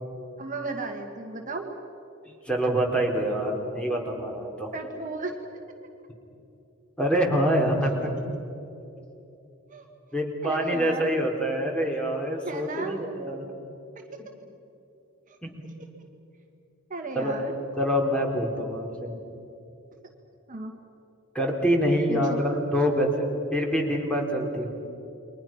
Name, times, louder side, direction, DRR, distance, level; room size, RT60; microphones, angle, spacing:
voice 1, 0.4-1.8 4.7-5.4 9.7-9.8 10.4-11.1 12.4-13.0 15.3-15.4 16.9-17.5 20.5-20.7 22.1-22.4, right 3 dB, 40° right, 3 dB, 1.8 m, -34 dB
voice 2, 2.5-4.7 7.0-8.1 10.1-13.5 15.4-15.6 17.1-17.4 17.8-19.2 21.3-24.7, equal, 5° left, 0 dB, 3.6 m, -26 dB
29.5 x 23.0 x 5.9 m, 2.9 s
head